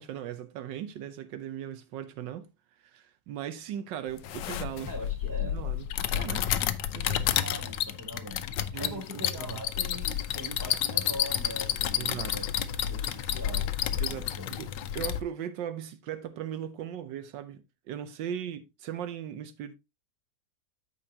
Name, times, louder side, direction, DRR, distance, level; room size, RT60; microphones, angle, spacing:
voice 1, 0.0-2.5 2.8-4.9 5.4-6.5 6.9-7.3 8.7-9.6 12.0-12.4 14.0-19.7, right 10 dB, 85° right, 1.4 m, -38 dB
sound 1, 4.2-15.2, left 10 dB, 85° left, 1.3 m, -30 dB
voice 2, 4.9-5.6 7.4-8.5 8.8-12.4 12.9-14.5, equal, 10° right, 3.2 m, -42 dB
14.0 x 4.8 x 2.7 m
omnidirectional pair, 1.9 m